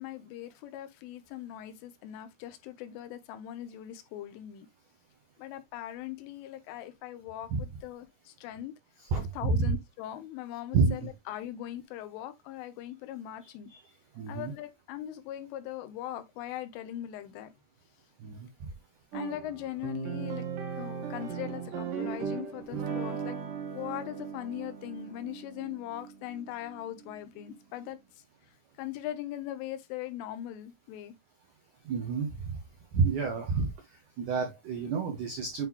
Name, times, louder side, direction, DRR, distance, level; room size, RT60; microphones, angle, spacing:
voice 1, 0.0-4.7 5.4-8.7 9.2-13.7 14.3-17.5 19.1-20.5 20.8-23.4 23.7-28.0 28.8-31.2, left 12 dB, 85° left, 3.3 m, -40 dB
voice 2, 9.0-9.7 10.7-11.1 13.4-13.8 14.1-14.5 18.2-18.7 31.8-32.6 32.9-35.7, right 4 dB, 85° right, 1.7 m, -30 dB
sound 1, 19.1-27.6, right 7 dB, 70° right, 2.1 m, -38 dB
9.0 x 3.9 x 3.0 m
omnidirectional pair, 5.8 m